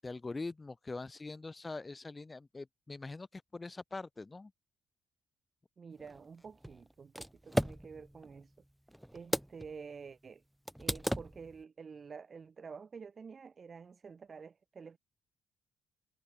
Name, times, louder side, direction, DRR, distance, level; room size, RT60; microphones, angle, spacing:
voice 1, 0.0-4.5, left 3 dB, 20° left, 7.2 m, -43 dB
voice 2, 5.8-8.5 9.1-10.4 10.8-15.0, right 5 dB, 40° right, 3.9 m, -49 dB
sound 1, 6.0-9.8 10.1-10.2 10.7-11.6, equal, 5° right, 0.6 m, -37 dB
cardioid pair, 90°, 0 cm